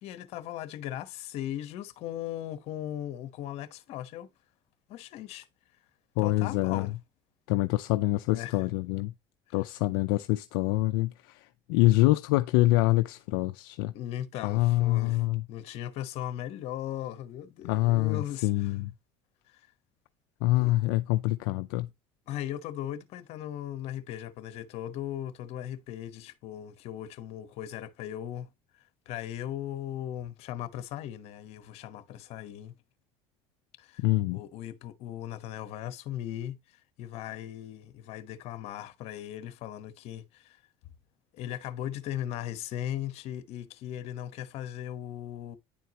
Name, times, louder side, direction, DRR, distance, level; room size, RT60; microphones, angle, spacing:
voice 1, 0.0-4.3 4.9-5.5 6.2-6.9 8.3-8.6 13.9-18.8 19.5-19.7 20.5-20.7 22.3-28.5 28.7-32.7 33.8-34.0 34.3-40.6 41.3-45.6, left 11 dB, 65° left, 1.1 m, -38 dB
voice 2, 6.2-6.9 7.5-9.1 9.5-13.9 14.4-15.4 17.6-18.9 20.4-21.9 34.0-34.4, left 18 dB, 85° left, 0.5 m, -25 dB
10.0 x 4.5 x 2.9 m
supercardioid pair, 105°, 12 cm